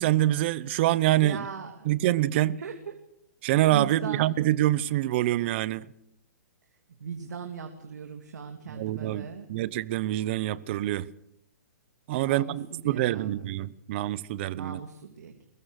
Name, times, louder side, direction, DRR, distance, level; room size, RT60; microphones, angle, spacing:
voice 1, 0.0-1.5 1.9-2.6 3.4-5.9 8.7-11.1 12.1-14.8, right 14 dB, 40° right, 0.8 m, -26 dB
voice 2, 1.2-1.9 2.6-2.9 3.7-4.2 7.0-9.5 12.1-13.5 14.5-15.3, right 6 dB, 80° right, 2.8 m, -38 dB
22.5 x 21.5 x 6.5 m
hypercardioid pair, 150°, 9 cm